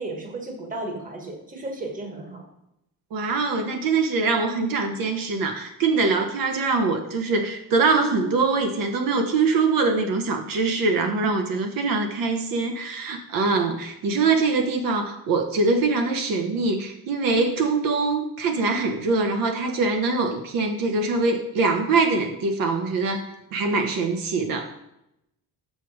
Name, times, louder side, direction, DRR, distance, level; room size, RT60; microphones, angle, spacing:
voice 1, 0.0-2.4, right 2 dB, 25° right, 3 dB, 1.3 m, -34 dB
voice 2, 3.1-24.7, right 3 dB, 70° right, 5 dB, 1.0 m, -23 dB
6.8 x 6.2 x 4.7 m, 0.84 s
cardioid pair, 165°, 35 cm